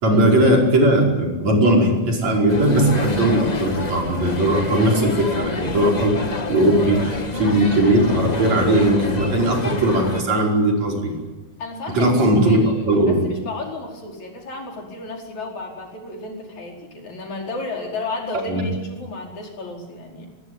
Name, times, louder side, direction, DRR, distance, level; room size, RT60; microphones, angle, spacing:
voice 1, 0.0-6.1 6.5-11.2 11.9-12.6 12.9-13.2 18.5-18.6, right 1 dB, 65° right, 0 dB, 6.4 m, -18 dB
sound 1, 2.5-10.2, left 3 dB, 30° left, 0.8 m, -28 dB
voice 2, 11.6-20.3, left 3 dB, 75° left, 1 dB, 6.2 m, -33 dB
24.5 x 21.5 x 9.5 m, 1.1 s
omnidirectional pair, 3.3 m